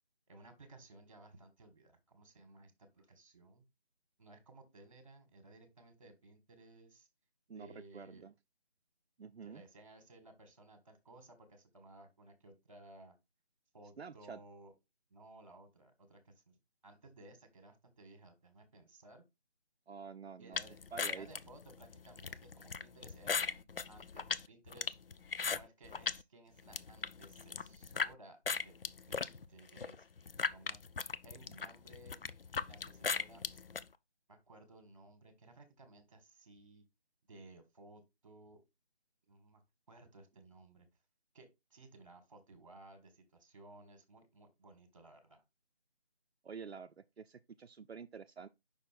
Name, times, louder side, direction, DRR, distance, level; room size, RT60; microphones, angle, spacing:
voice 1, 0.3-3.7 4.2-7.1 7.5-8.2 9.4-13.1 13.7-14.7 15.1-16.6 16.8-19.2 20.4-20.8 21.0-25.0 25.4-28.4 28.6-28.7 29.1-30.1 30.5-30.8 31.2-32.2 32.7-33.4 34.3-36.8 37.3-38.6 39.3-39.6 39.9-40.9 41.3-45.4, right 2 dB, 30° right, 1.6 m, -58 dB
voice 2, 7.5-8.3 9.2-9.6 14.0-14.4 19.9-20.6 20.9-21.3 46.4-48.5, right 6 dB, 75° right, 0.6 m, -48 dB
sound 1, 20.5-26.2 26.6-28.1 28.5-33.8, left 5 dB, 60° left, 0.5 m, -38 dB
5.6 x 4.4 x 4.3 m
figure-of-eight pair, 165°, 32 cm